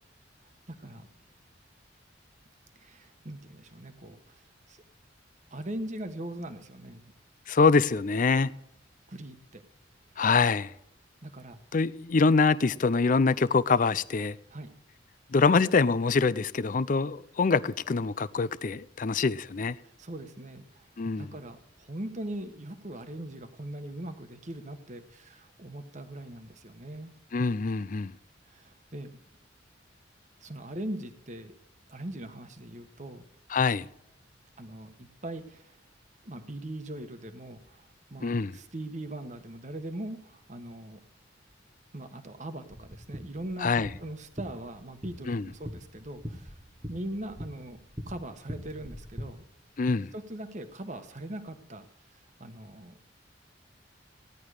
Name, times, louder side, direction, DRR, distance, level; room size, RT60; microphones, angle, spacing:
voice 1, 0.7-1.1 2.8-4.4 4.7-4.8 5.5-7.1 9.1-9.6 11.2-11.6 14.5-14.7 19.8-20.9 21.2-27.1 28.5-29.2 30.4-31.5 31.9-33.2 34.6-35.8 36.2-41.0 41.9-43.7 44.0-46.5 46.9-47.8 48.1-49.4 50.1-51.8 52.4-53.0, right 1 dB, 40° right, 1.2 m, -40 dB
voice 2, 7.5-8.5 10.2-10.7 11.7-14.3 15.3-19.8 21.0-21.3 27.3-28.1 33.5-33.9 38.2-38.5 43.6-43.9 45.3-45.5 49.8-50.1, left 4 dB, 45° left, 0.5 m, -24 dB
sound 1, 42.7-49.2, equal, 20° right, 1.4 m, -42 dB
16.0 x 10.5 x 4.9 m
head